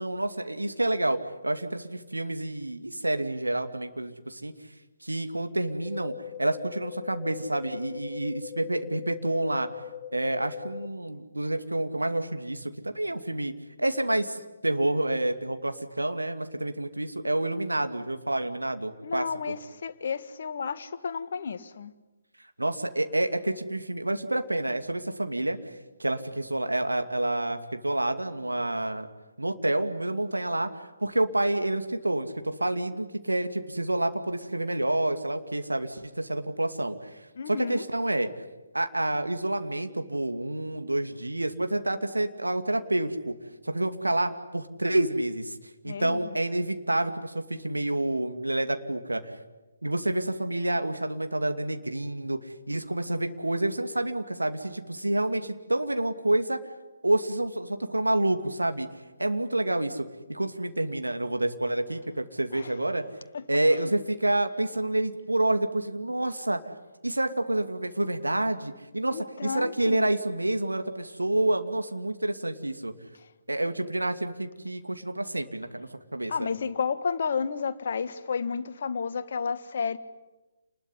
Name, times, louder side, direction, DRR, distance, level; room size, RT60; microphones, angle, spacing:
voice 1, 0.0-4.5 5.0-6.1 6.4-9.7 10.1-13.5 13.8-14.4 14.6-19.3 22.6-25.7 26.0-29.1 29.4-37.2 37.5-38.3 38.7-43.3 43.6-45.6 45.8-49.4 49.8-56.6 57.0-58.9 59.2-63.0 63.5-66.6 67.0-72.9 73.5-76.5, right 1 dB, 80° right, 7 dB, 2.5 m, -28 dB
sound 1, 5.9-10.9, left 11 dB, 25° left, 1.7 m, -41 dB
voice 2, 19.0-21.9 37.4-37.8 45.8-46.4 62.5-62.7 63.3-63.4 69.1-70.1 76.3-80.0, left 6 dB, 50° left, 10 dB, 1.6 m, -31 dB
28.5 x 20.5 x 9.9 m, 1.1 s
figure-of-eight pair, 140°, 0 cm